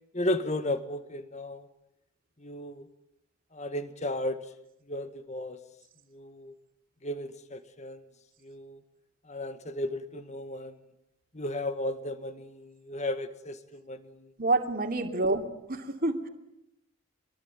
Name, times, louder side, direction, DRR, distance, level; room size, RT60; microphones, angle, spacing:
voice 1, 0.1-1.7 2.4-2.9 3.5-4.4 4.9-5.6 6.1-6.5 7.0-8.0 8.4-8.8 9.3-10.8 11.3-14.3 15.1-15.2, left 1 dB, 30° left, 10 dB, 1.8 m, -34 dB
voice 2, 14.4-16.3, right 2 dB, 40° right, 5 dB, 3.0 m, -28 dB
26.5 x 22.0 x 9.6 m, 0.83 s
head